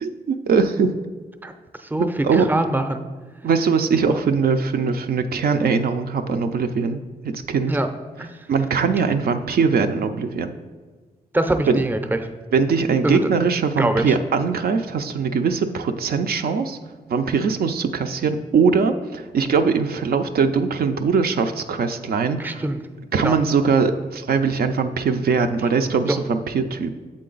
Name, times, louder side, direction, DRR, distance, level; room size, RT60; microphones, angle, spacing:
voice 1, 0.0-0.9 2.2-2.5 3.4-7.0 7.5-7.8 8.5-10.5 11.7-11.8 12.5-16.8 17.1-22.6 23.1-26.9, right 5 dB, 70° right, 7 dB, 0.4 m, -21 dB
voice 2, 1.9-3.0 4.1-4.2 7.7-7.9 8.2-8.3 11.3-12.2 13.0-13.2 13.8-14.1 22.4-22.8 23.2-23.4 26.1-26.2, right 1 dB, 10° right, 8 dB, 0.5 m, -23 dB
7.5 x 3.8 x 3.9 m, 1.4 s
cardioid pair, 70°, 16 cm